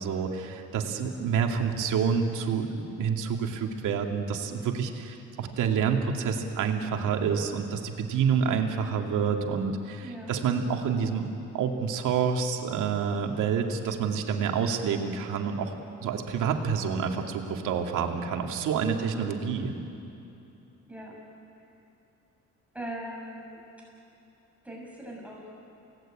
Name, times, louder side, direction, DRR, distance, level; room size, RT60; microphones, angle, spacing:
voice 1, 0.0-11.3 11.5-19.7, right 6 dB, 85° right, 3 dB, 2.5 m, -28 dB
voice 2, 10.0-10.3 18.8-19.2 20.9-21.1 22.7-23.6 24.6-25.5, right 1 dB, 5° right, -3 dB, 6.9 m, -40 dB
28.5 x 18.5 x 8.9 m, 2.8 s
cardioid pair, 90°, 30 cm